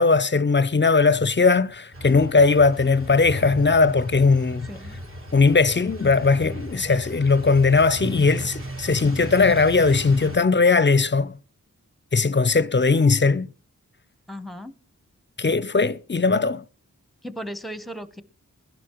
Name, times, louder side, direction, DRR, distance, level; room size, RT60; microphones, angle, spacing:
voice 1, 0.0-4.7 5.3-11.3 12.1-13.5 15.4-16.6, left 4 dB, 35° left, 0.5 m, -19 dB
sound 1, 1.9-10.4, right 1 dB, 40° right, 1.4 m, -36 dB
voice 2, 4.7-5.0 14.3-14.7 17.2-18.2, equal, ahead, 0.9 m, -36 dB
21.0 x 11.0 x 3.0 m
wide cardioid pair, 60°, 32 cm